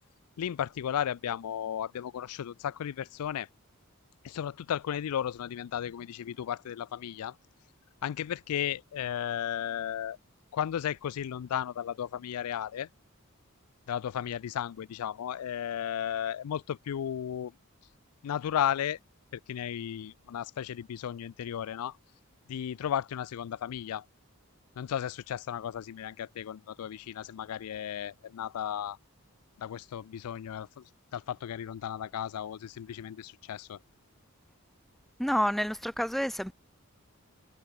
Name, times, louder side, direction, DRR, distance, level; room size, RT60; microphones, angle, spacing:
voice 1, 0.4-3.5 4.2-7.4 8.0-10.2 10.5-12.9 13.9-17.5 18.2-19.0 19.5-22.0 22.5-24.0 24.8-29.0 29.6-30.8 31.1-33.8, left 9 dB, 90° left, 0.4 m, -34 dB
voice 2, 35.2-36.5, equal, ahead, 0.9 m, -29 dB
head